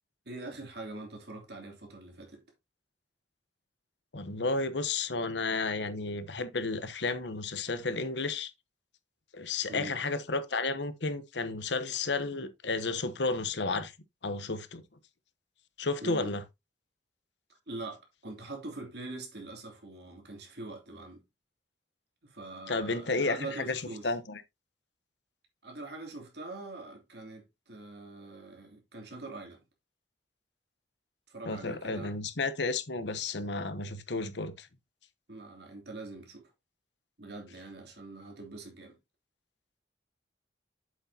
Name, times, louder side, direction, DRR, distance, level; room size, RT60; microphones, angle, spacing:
voice 1, 0.2-2.4 9.7-10.0 16.0-16.4 17.7-21.2 22.2-24.1 25.6-29.6 31.3-32.1 35.3-36.5 37.2-39.0, right 2 dB, 65° right, 3.1 m, -43 dB
voice 2, 4.1-8.5 9.3-13.9 14.2-14.8 15.8-16.4 22.7-24.4 31.5-34.7, left 3 dB, 70° left, 1.0 m, -32 dB
8.3 x 7.8 x 2.8 m
head